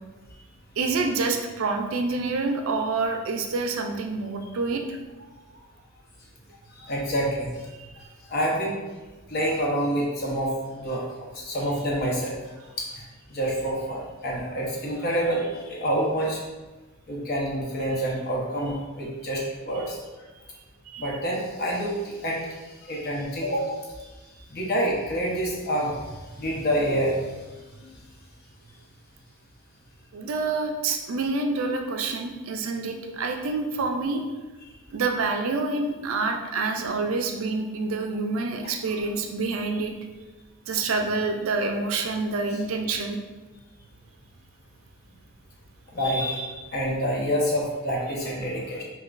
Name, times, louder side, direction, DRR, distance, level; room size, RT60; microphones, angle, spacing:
voice 1, 0.8-5.0 7.8-7.9 20.9-21.1 30.1-34.2 34.9-39.9 40.7-43.2, right 3 dB, 70° right, 4 dB, 0.4 m, -27 dB
voice 2, 6.8-7.5 8.3-8.8 9.3-11.0 11.3-12.3 12.8-13.0 13.3-16.4 17.1-20.0 21.0-22.4 22.8-23.8 24.5-26.0 26.4-27.2 27.8-27.9 33.0-33.1 45.9-48.8, equal, 45° left, -3 dB, 0.8 m, -27 dB
5.7 x 2.3 x 2.5 m, 1.2 s
head